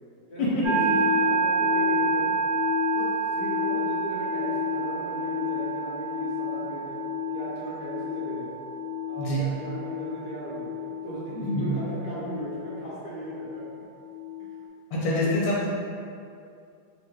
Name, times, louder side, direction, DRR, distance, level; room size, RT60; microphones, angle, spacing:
voice 1, 0.3-2.4 2.9-7.0 7.3-8.6 9.1-10.7 11.0-13.6 14.4-14.5 15.0-15.4, right 1 dB, 65° left, -9 dB, 1.0 m, -37 dB
sound 1, 0.6-14.5, equal, 85° right, 1.6 m, -29 dB
voice 2, 14.9-15.7, left 1 dB, 80° left, -5 dB, 1.4 m, -25 dB
3.6 x 2.1 x 3.1 m, 2.5 s
omnidirectional pair, 2.4 m